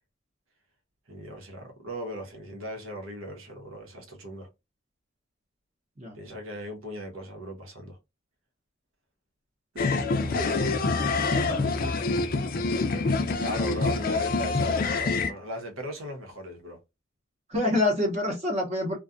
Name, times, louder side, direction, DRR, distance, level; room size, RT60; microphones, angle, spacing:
voice 1, 1.1-4.5 6.1-8.0 9.7-9.9 10.2-10.9 13.4-16.8, equal, 85° right, 1.0 m, -38 dB
sound 1, 9.8-15.3, left 3 dB, 45° left, 0.4 m, -26 dB
voice 2, 11.0-12.0 17.5-19.0, left 1 dB, 35° right, 0.7 m, -28 dB
2.5 x 2.2 x 2.5 m
head